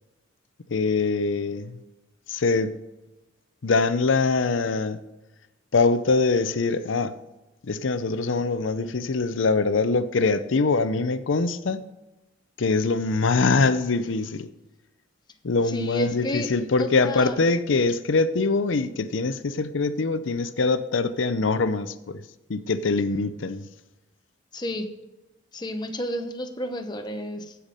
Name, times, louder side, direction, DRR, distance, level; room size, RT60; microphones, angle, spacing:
voice 1, 0.7-1.8 2.3-2.8 3.6-5.0 5.7-7.2 7.6-11.8 12.6-14.5 15.4-22.2 22.5-23.7, left 3 dB, 80° left, 0.6 m, -23 dB
voice 2, 15.7-16.5 16.8-17.4 24.5-24.9 25.5-27.5, equal, 20° left, 0.9 m, -31 dB
15.5 x 5.8 x 5.2 m
head